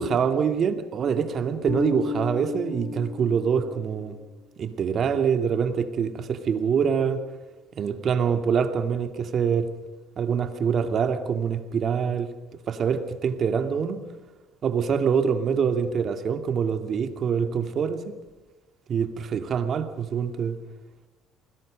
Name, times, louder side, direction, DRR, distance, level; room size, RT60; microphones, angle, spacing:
voice 1, 0.0-4.2 4.6-7.2 7.8-9.7 10.2-12.3 12.7-14.0 14.6-18.2 18.9-20.6, right 7 dB, 50° right, 8 dB, 2.5 m, -25 dB
Bass guitar, 1.7-4.1, left 5 dB, 40° left, 3.6 m, -33 dB
29.5 x 20.5 x 5.3 m, 1.2 s
cardioid pair, 105°, 0 cm